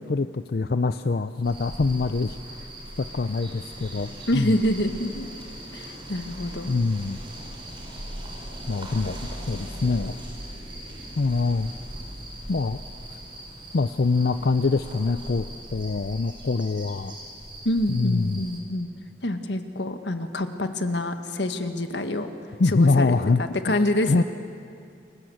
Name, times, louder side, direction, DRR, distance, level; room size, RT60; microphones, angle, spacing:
voice 1, 0.0-2.7 3.0-4.5 6.7-7.2 8.7-10.2 11.2-11.7 12.5-12.8 13.7-15.4 15.7-17.1 17.9-18.4 22.6-23.4 24.1-24.2, left 3 dB, 60° left, 10 dB, 0.5 m, -24 dB
sound 1, 1.4-18.6, right 1 dB, 30° right, 5.1 m, -39 dB
voice 2, 4.3-5.3 5.7-6.7 17.6-18.9 19.2-22.3 22.6-24.2, left 1 dB, 85° left, 7 dB, 1.7 m, -26 dB
29.0 x 21.0 x 7.9 m, 2.4 s
head